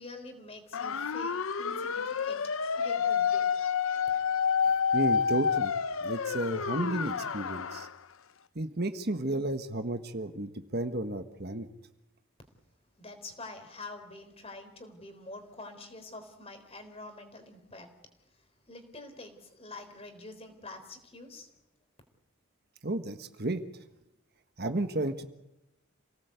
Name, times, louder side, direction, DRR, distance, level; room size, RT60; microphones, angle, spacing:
voice 1, 0.0-2.4 2.7-3.5 13.0-17.9 18.7-21.5, left 2 dB, 30° left, 7 dB, 3.9 m, -46 dB
sound 1, 0.7-7.9, left 6 dB, 75° left, 0.8 m, -29 dB
voice 2, 4.6-5.7 6.0-7.9 8.5-11.7 22.8-23.6 24.6-25.3, right 1 dB, 50° right, 8 dB, 1.5 m, -32 dB
28.0 x 18.0 x 8.3 m, 0.91 s
head